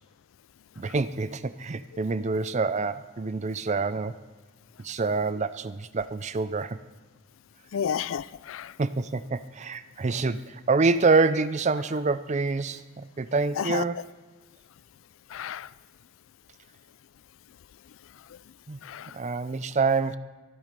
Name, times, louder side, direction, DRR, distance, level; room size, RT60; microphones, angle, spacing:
voice 1, 0.8-4.2 4.8-6.8 8.8-14.0 18.7-18.8 19.1-20.2, right 4 dB, 35° right, 0.5 m, -26 dB
voice 2, 7.7-8.7 13.6-13.8 15.3-15.7 18.8-19.2, left 8 dB, 75° left, 0.4 m, -31 dB
24.0 x 10.5 x 5.3 m
head